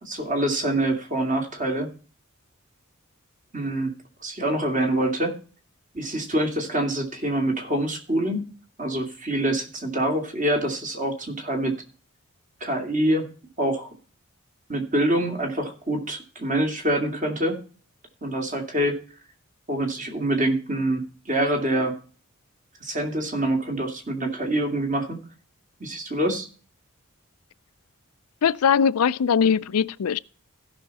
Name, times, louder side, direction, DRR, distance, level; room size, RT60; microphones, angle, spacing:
voice 1, 0.0-1.9 3.5-3.9 4.2-5.4 5.9-8.5 8.8-11.7 12.6-13.3 13.6-13.9 14.7-17.6 18.2-19.0 19.7-22.0 22.8-25.2 25.8-26.5, right 1 dB, 35° right, 2.5 m, -25 dB
voice 2, 28.4-30.2, left 7 dB, 90° left, 0.4 m, -21 dB
16.0 x 5.8 x 4.2 m
head